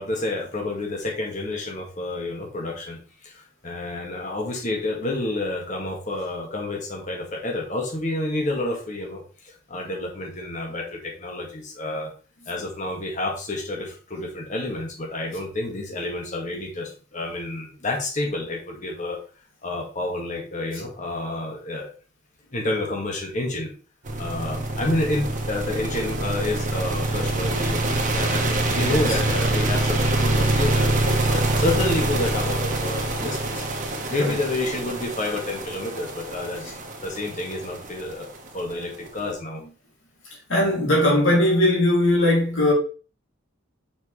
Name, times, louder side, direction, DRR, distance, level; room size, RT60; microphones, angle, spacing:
voice 1, 0.0-12.1 12.5-19.2 19.6-21.9 22.5-23.7 24.2-38.3 38.5-39.6, left 2 dB, 40° left, 1.7 m, -29 dB
sound 1, 24.1-39.2, right 2 dB, 40° right, 1.2 m, -25 dB
voice 2, 28.8-29.2 34.2-34.4 36.6-36.7 40.5-42.7, left 1 dB, 70° left, 2.8 m, -20 dB
6.5 x 4.8 x 3.3 m
head